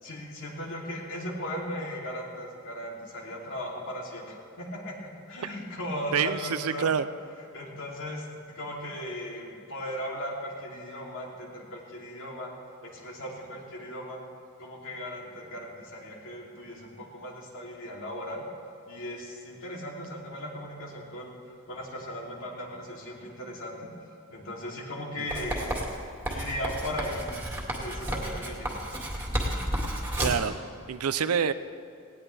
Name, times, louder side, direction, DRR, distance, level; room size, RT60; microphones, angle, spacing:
voice 1, 0.0-6.9 7.5-12.5 12.8-14.2 14.6-18.4 18.9-23.9 24.3-25.9 26.2-28.7, equal, 65° left, -2 dB, 3.0 m, -37 dB
voice 2, 6.1-7.1 25.2-25.3 30.2-30.5 30.9-31.5, right 7 dB, 85° right, 12 dB, 0.6 m, -27 dB
Writing, 25.3-30.5, right 1 dB, 10° right, 2.1 m, -32 dB
18.5 x 17.5 x 3.4 m, 2.6 s
head